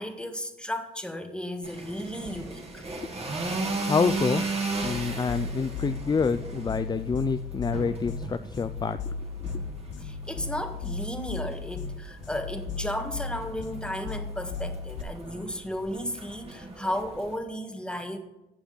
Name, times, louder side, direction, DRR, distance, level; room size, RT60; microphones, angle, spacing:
voice 1, 0.0-2.9 10.0-18.2, equal, 5° left, 5 dB, 1.6 m, -34 dB
sound 1, 1.6-17.4, right 3 dB, 30° right, 2.3 m, -37 dB
voice 2, 3.8-4.5 4.8-9.5, left 5 dB, 20° left, 11 dB, 0.4 m, -28 dB
sound 2, 4.8-15.0, left 4 dB, 70° left, 1.0 m, -36 dB
16.0 x 6.0 x 3.9 m, 0.96 s
cardioid pair, 90°, 20 cm